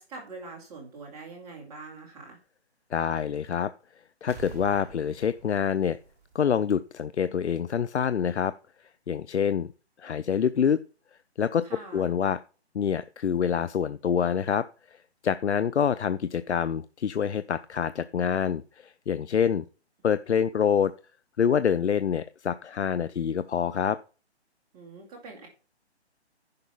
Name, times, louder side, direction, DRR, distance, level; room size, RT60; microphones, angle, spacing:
voice 1, 0.0-2.4 11.6-12.1 24.7-25.5, right 3 dB, 10° right, 0 dB, 2.2 m, -44 dB
voice 2, 2.9-3.7 4.2-6.0 6.3-8.5 9.1-9.7 10.0-10.8 11.4-11.6 11.9-12.4 12.7-19.7 20.0-20.9 21.4-24.0, left 7 dB, 80° left, 14 dB, 0.6 m, -26 dB
sound 1, 4.3-6.9 7.2-7.3, right 5 dB, 35° right, 2.8 m, -46 dB
10.5 x 5.4 x 5.5 m, 0.35 s
hypercardioid pair, 160°, 34 cm